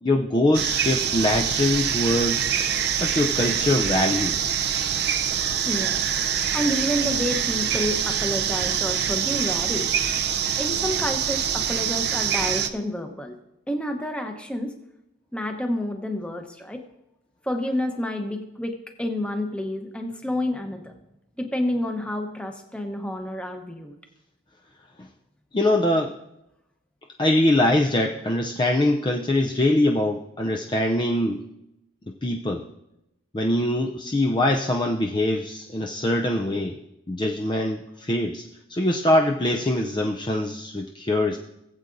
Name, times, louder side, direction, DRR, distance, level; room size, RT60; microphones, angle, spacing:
voice 1, 0.0-2.4 3.0-4.6 25.0-25.1 25.5-26.2 27.2-31.4 32.2-32.6 33.3-36.8 37.1-41.4, left 1 dB, 25° left, 2 dB, 0.4 m, -23 dB
sound 1, 0.5-12.7, right 8 dB, 50° right, 0.5 m, -25 dB
voice 2, 5.6-9.9 10.6-13.4 13.7-14.7 15.3-16.8 17.4-20.9 21.4-23.9, left 1 dB, 5° left, 4 dB, 0.9 m, -29 dB
19.0 x 8.1 x 2.6 m, 0.89 s
head